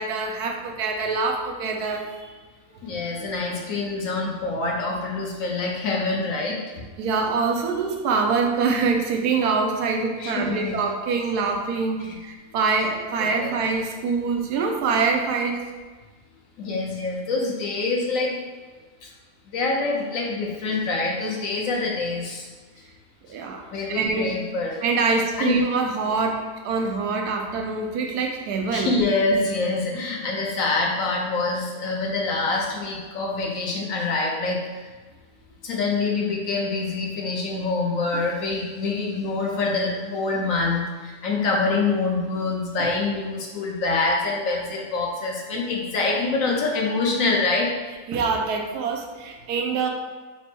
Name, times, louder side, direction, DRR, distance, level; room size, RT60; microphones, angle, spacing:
voice 1, 0.0-2.2 2.7-2.8 3.2-3.3 7.0-15.6 23.3-23.6 23.9-24.4 24.8-28.9 38.1-38.2 42.8-42.9 48.1-49.9, right 4 dB, 85° right, 3 dB, 1.1 m, -25 dB
voice 2, 2.8-6.6 10.2-10.8 12.0-12.1 13.2-13.6 16.6-18.4 19.0-19.1 19.5-22.4 23.7-24.8 25.4-25.6 28.7-34.8 35.6-47.7, left 3 dB, 65° left, -1 dB, 1.0 m, -25 dB
4.3 x 2.0 x 4.3 m, 1.4 s
omnidirectional pair, 1.6 m